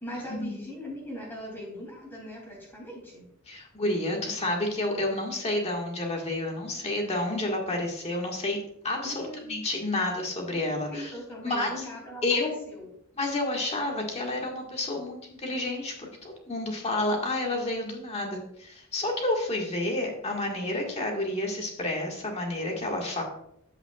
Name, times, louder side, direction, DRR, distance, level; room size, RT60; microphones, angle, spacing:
voice 1, 0.0-3.3 9.0-9.4 10.9-12.9, equal, 10° left, -4 dB, 3.0 m, -40 dB
voice 2, 3.5-8.6 8.8-11.1 11.4-11.9 12.2-12.5 13.2-23.2, left 2 dB, 30° left, 1 dB, 1.8 m, -30 dB
14.0 x 5.7 x 2.4 m, 0.76 s
head